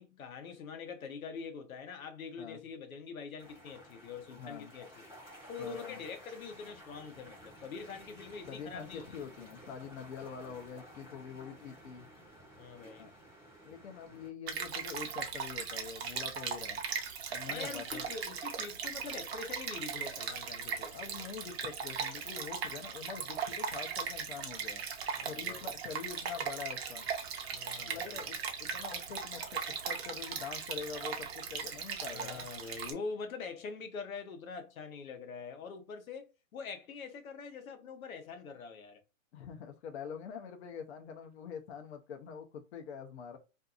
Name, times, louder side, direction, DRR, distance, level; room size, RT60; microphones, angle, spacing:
voice 1, 0.0-5.2 5.5-9.3 12.6-13.1 17.5-21.0 25.1-25.7 27.5-28.2 32.0-39.0, left 5 dB, 85° left, 0.8 m, -44 dB
sound 1, 3.4-14.3, equal, 5° left, 0.4 m, -54 dB
voice 2, 4.4-4.7 5.6-6.0 8.5-12.1 13.0-13.1 13.6-16.8 17.3-18.1 20.9-24.8 25.2-27.1 27.9-32.5 39.3-43.4, left 7 dB, 50° left, 0.6 m, -45 dB
Stream, 14.5-32.9, right 6 dB, 50° right, 0.6 m, -38 dB
2.6 x 2.4 x 2.4 m
hypercardioid pair, 155°, 41 cm